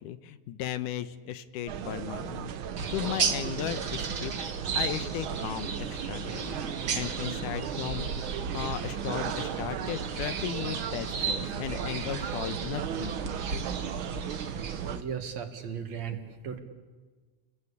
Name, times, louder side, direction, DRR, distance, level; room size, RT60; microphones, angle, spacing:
voice 1, 0.0-2.5 2.9-4.4 4.7-6.6 7.0-8.1 8.5-13.2, left 11 dB, 85° left, 12 dB, 2.5 m, -36 dB
sound 1, 1.7-15.0, right 8 dB, 75° right, 1.1 m, -36 dB
sound 2, 2.8-15.0, right 5 dB, 45° right, 1.4 m, -35 dB
sound 3, 5.5-11.4 11.7-11.8, left 1 dB, ahead, 2.2 m, -51 dB
voice 2, 14.8-16.2 16.4-16.6, right 7 dB, 60° right, 6 dB, 3.0 m, -36 dB
30.0 x 21.5 x 8.5 m, 1.4 s
omnidirectional pair, 3.6 m